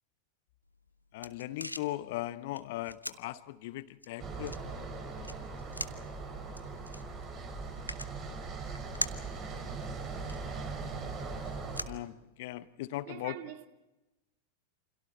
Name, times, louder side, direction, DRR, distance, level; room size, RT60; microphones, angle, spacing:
sound 1, 0.7-12.7, left 1 dB, 90° left, 0.9 m, -45 dB
voice 1, 1.1-4.5 11.9-13.4, left 16 dB, 50° left, 0.9 m, -38 dB
sound 2, 4.2-11.8, right 4 dB, 30° right, 5.3 m, -40 dB
voice 2, 13.1-13.7, right 12 dB, 50° right, 1.9 m, -44 dB
29.0 x 27.0 x 4.3 m
figure-of-eight pair, 90°, 0 cm